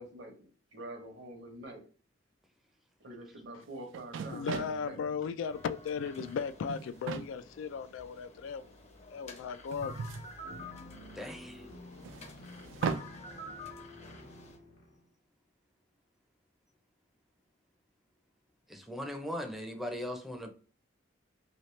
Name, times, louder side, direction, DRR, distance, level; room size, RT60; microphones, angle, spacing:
voice 1, 0.0-1.9 3.0-5.0, right 1 dB, 65° right, 0.8 m, -46 dB
sound 1, 3.6-3.7 3.9-4.8 5.9-6.3 6.7-7.3 8.2-8.3 9.7-11.0 12.0-13.1, right 5 dB, 85° right, 0.3 m, -38 dB
voice 2, 4.3-8.7 9.1-10.0, left 6 dB, 85° left, 0.3 m, -36 dB
sound 2, 5.5-14.6, left 3 dB, 35° left, 0.6 m, -50 dB
sound 3, 10.4-15.0, left 1 dB, 55° left, 1.0 m, -51 dB
voice 3, 11.2-11.7 18.7-20.5, equal, ahead, 0.5 m, -39 dB
2.9 x 2.8 x 3.1 m
head